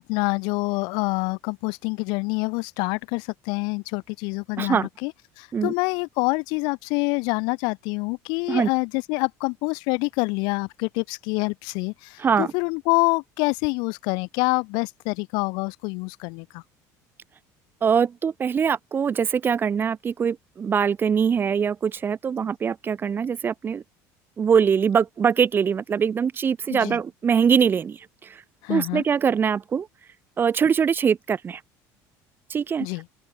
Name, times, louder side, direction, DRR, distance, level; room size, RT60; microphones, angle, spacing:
voice 1, 0.0-16.6 26.7-27.0 28.6-29.0 32.8-33.1, left 30 dB, 80° left, 2.1 m, -26 dB
voice 2, 4.6-4.9 5.5-5.7 8.5-8.7 12.2-12.5 17.8-23.8 24.4-28.0 28.7-29.9 30.4-31.6 32.5-32.9, right 7 dB, 30° right, 2.1 m, -22 dB
open air
cardioid pair, 135°, 7 cm